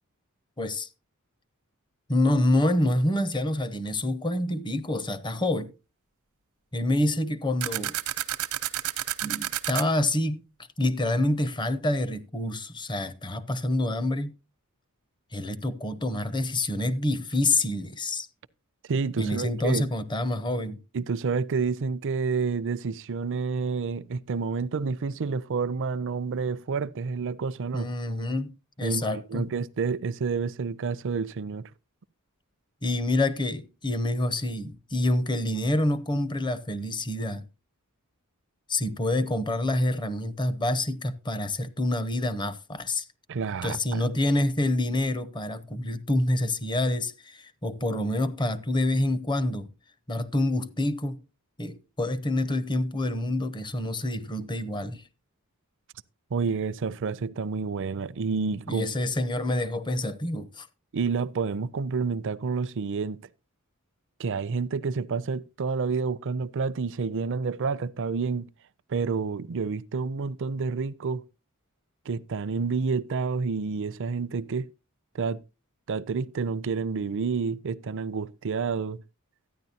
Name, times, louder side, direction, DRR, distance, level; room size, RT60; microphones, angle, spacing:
voice 1, 0.6-0.9 2.1-5.7 6.7-8.0 9.2-10.4 10.8-14.3 15.3-18.3 19.2-20.8 27.7-29.5 32.8-37.5 38.7-43.1 43.6-49.7 50.1-51.2 51.6-55.1 58.7-60.7, left 1 dB, 20° left, 0.7 m, -27 dB
sound 1, 7.6-9.8, right 12 dB, 90° right, 0.8 m, -30 dB
voice 2, 18.9-19.9 20.9-27.9 28.8-31.7 43.3-44.0 56.3-58.9 60.9-63.2 64.2-68.5 68.9-71.2 72.1-74.7 75.1-75.4 75.9-79.0, right 5 dB, 60° right, 0.5 m, -29 dB
13.5 x 9.7 x 2.8 m
head